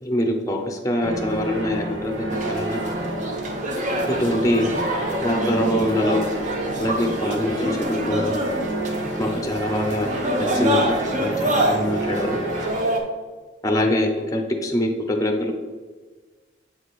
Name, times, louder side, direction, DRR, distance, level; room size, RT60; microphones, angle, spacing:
voice 1, 0.0-2.8 4.1-4.7 5.2-6.2 6.8-8.3 9.2-10.1 10.4-12.4 13.6-15.5, left 1 dB, 20° left, 3 dB, 0.5 m, -24 dB
sound 1, 1.0-12.7, right 2 dB, 80° right, 1.0 m, -30 dB
sound 2, 2.3-13.0, right 1 dB, 40° right, 0.7 m, -26 dB
7.4 x 3.3 x 4.2 m, 1.4 s
head